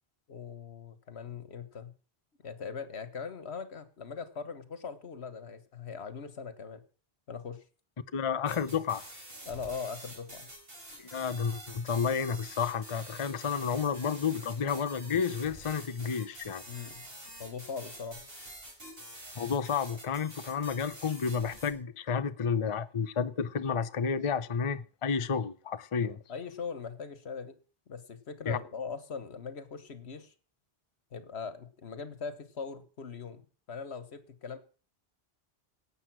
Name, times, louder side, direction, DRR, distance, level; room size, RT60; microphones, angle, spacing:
voice 1, 0.3-1.9 2.4-6.8 7.3-7.6 9.4-10.5 16.7-17.0 17.4-18.2 26.0-27.6 27.9-30.3 31.1-34.6, left 5 dB, 85° left, 1.6 m, -41 dB
voice 2, 8.1-9.0 11.0-16.6 19.4-26.2 28.5-28.6, left 6 dB, 35° left, 0.7 m, -31 dB
sound 1, 8.5-21.7, right 1 dB, 60° right, 4.9 m, -48 dB
17.5 x 8.0 x 6.1 m
omnidirectional pair, 1.1 m